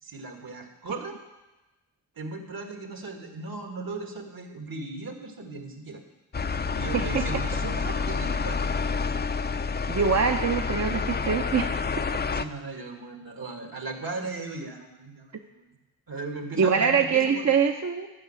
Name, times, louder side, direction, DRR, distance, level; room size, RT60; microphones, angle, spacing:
voice 1, 0.0-1.2 2.2-6.0 6.7-8.7 12.3-15.8 16.1-17.5, right 3 dB, 70° right, 3 dB, 2.0 m, -37 dB
sound 1, 6.3-12.5, left 5 dB, 25° left, 0.5 m, -28 dB
voice 2, 9.9-11.7 16.6-18.1, right 6 dB, 45° right, 4 dB, 0.7 m, -23 dB
12.0 x 5.5 x 8.2 m, 1.1 s
cardioid pair, 50°, 37 cm